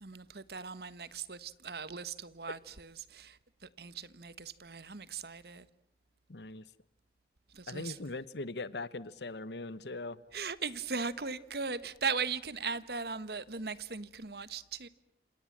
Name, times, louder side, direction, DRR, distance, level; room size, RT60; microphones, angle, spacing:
voice 1, 0.0-3.4 3.8-5.7 7.5-8.0 10.3-14.9, right 5 dB, 65° right, 1.3 m, -38 dB
voice 2, 6.3-6.6 7.7-10.2, left 3 dB, 80° left, 1.1 m, -40 dB
28.0 x 28.0 x 7.4 m
head